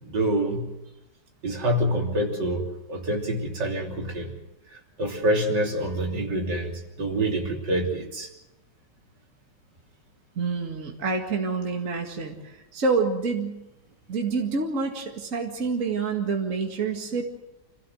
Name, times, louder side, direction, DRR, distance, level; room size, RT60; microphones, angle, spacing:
voice 1, 0.0-0.7 1.4-4.3 5.0-6.7 7.0-8.3, right 1 dB, 75° right, 1 dB, 3.7 m, -26 dB
voice 2, 10.4-13.6 14.1-17.2, right 4 dB, 45° right, 2 dB, 2.4 m, -27 dB
27.0 x 16.0 x 7.9 m, 0.96 s
omnidirectional pair, 1.9 m